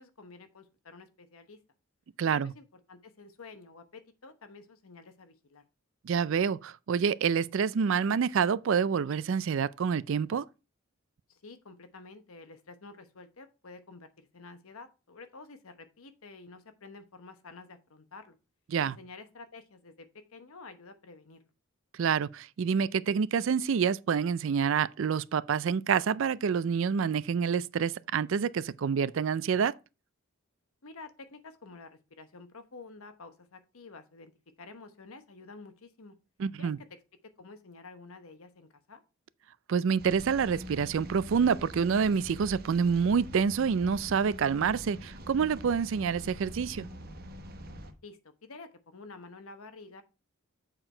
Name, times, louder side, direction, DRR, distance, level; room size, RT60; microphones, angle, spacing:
voice 1, 0.0-1.6 2.3-5.6 11.3-18.3 18.8-21.4 30.8-34.3 34.6-36.2 36.6-36.9 37.4-39.0 48.0-48.2 48.5-50.0, left 3 dB, 75° left, 1.0 m, -50 dB
voice 2, 2.2-2.5 6.0-10.4 18.7-19.0 22.0-29.7 36.4-36.8 39.7-46.9, right 6 dB, 60° right, 0.4 m, -27 dB
sound 1, 40.0-47.9, equal, 45° right, 1.0 m, -44 dB
7.7 x 4.6 x 4.4 m
head